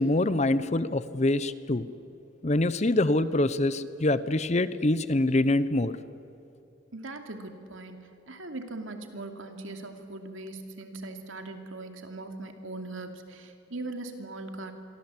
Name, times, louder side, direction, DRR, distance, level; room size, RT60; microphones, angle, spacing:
voice 1, 0.0-1.9 2.4-6.0, left 2 dB, 35° left, 15 dB, 0.7 m, -25 dB
voice 2, 6.9-14.7, right 2 dB, 75° right, 5 dB, 2.7 m, -40 dB
27.5 x 22.5 x 8.4 m, 2.7 s
head